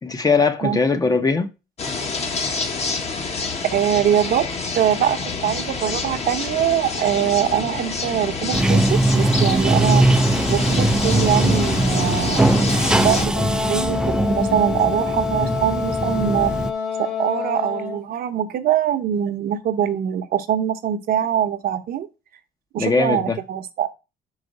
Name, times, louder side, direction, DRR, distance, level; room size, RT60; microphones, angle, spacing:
voice 1, 0.0-1.5 22.8-23.4, left 4 dB, 20° left, 0.7 m, -20 dB
sound 1, 1.8-13.3, left 4 dB, 40° left, 1.2 m, -27 dB
voice 2, 3.7-4.5 4.7-10.1 10.5-12.5 12.9-16.5 17.0-22.1 22.7-23.9, right 10 dB, 60° right, 0.8 m, -23 dB
Bathtub (filling or washing), 8.5-16.7, right 1 dB, 5° right, 0.4 m, -20 dB
Wind instrument woodwind instrument, 13.4-18.0, left 6 dB, 85° left, 3.0 m, -27 dB
5.1 x 4.8 x 5.2 m
cardioid pair, 110°, 17 cm